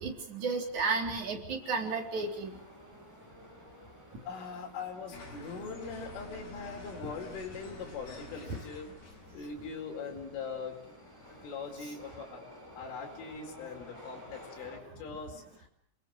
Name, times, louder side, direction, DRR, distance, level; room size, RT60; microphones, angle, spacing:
voice 1, 0.0-2.6, right 4 dB, 40° right, 2 dB, 4.9 m, -33 dB
sound 1, 1.6-14.8, equal, 5° left, 7.7 m, -53 dB
voice 2, 4.3-8.9 9.3-10.9 11.4-12.4 12.8-15.7, left 5 dB, 75° left, 2 dB, 7.1 m, -41 dB
sound 2, 5.1-11.8, left 2 dB, 55° left, 9.4 m, -50 dB
27.5 x 22.0 x 7.8 m, 0.67 s
omnidirectional pair, 5.8 m